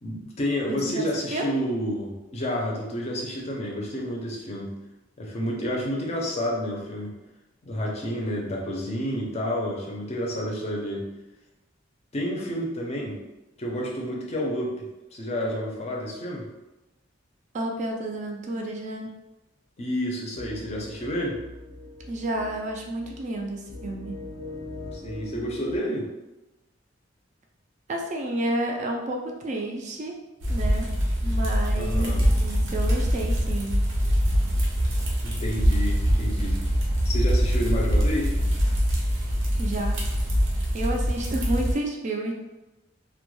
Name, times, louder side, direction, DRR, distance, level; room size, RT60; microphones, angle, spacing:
voice 1, 0.0-4.7 5.2-7.1 7.6-11.1 12.1-13.2 13.6-14.8 15.1-16.5 19.8-21.4 24.9-26.1 31.8-32.2 35.2-36.6 37.0-38.4, equal, 35° left, -1 dB, 0.5 m, -30 dB
voice 2, 0.7-1.5 17.5-19.1 22.1-24.2 27.9-30.2 30.5-30.9 31.2-33.8 39.6-40.0 40.7-42.3, right 1 dB, 40° right, 1 dB, 0.3 m, -30 dB
sound 1, 20.3-25.8, left 2 dB, 80° left, 0.6 m, -41 dB
sound 2, 30.4-41.7, equal, 90° right, 0.6 m, -23 dB
2.2 x 2.1 x 3.0 m, 1.0 s
head